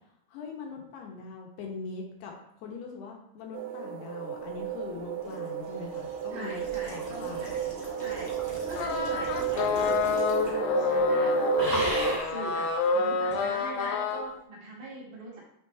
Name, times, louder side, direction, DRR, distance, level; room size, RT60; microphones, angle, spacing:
voice 1, 0.3-2.3 2.6-6.6 6.9-7.5, left 4 dB, 70° left, 0 dB, 2.8 m, -41 dB
sound 1, 3.5-12.2, right 9 dB, 75° right, 2.4 m, -33 dB
sound 2, 4.9-10.7 10.9-11.2 11.5-12.4 13.3-13.4, equal, 10° left, 0.7 m, -38 dB
voice 2, 6.3-11.4 11.6-12.7 12.9-15.4, right 2 dB, 55° right, -7 dB, 4.2 m, -42 dB
sound 3, 8.8-14.2, left 4 dB, 90° left, 3.4 m, -28 dB
11.0 x 4.0 x 3.4 m, 0.76 s
omnidirectional pair, 5.5 m